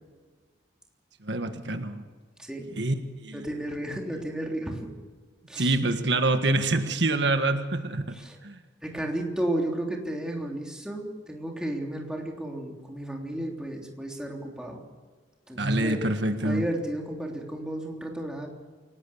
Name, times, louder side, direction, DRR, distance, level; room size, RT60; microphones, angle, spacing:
voice 1, 1.2-2.0 2.8-3.4 5.6-8.2 8.4-8.6 15.6-16.6, right 2 dB, 75° right, 7 dB, 1.6 m, -26 dB
voice 2, 2.4-2.8 3.3-4.9 5.5-5.7 8.1-8.4 8.8-14.8 15.5-16.0 16.4-18.5, right 1 dB, 5° right, 0 dB, 3.3 m, -33 dB
28.5 x 18.0 x 7.2 m, 1.5 s
head